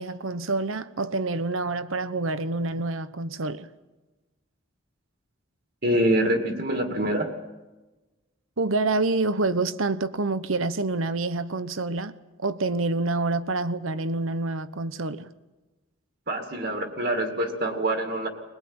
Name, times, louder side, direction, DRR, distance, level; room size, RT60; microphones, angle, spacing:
voice 1, 0.0-3.7 8.6-12.1 12.4-15.3, right 3 dB, 80° right, 1.0 m, -27 dB
voice 2, 5.8-7.3 16.3-18.3, right 1 dB, 50° right, 2.3 m, -25 dB
21.0 x 20.5 x 8.8 m
head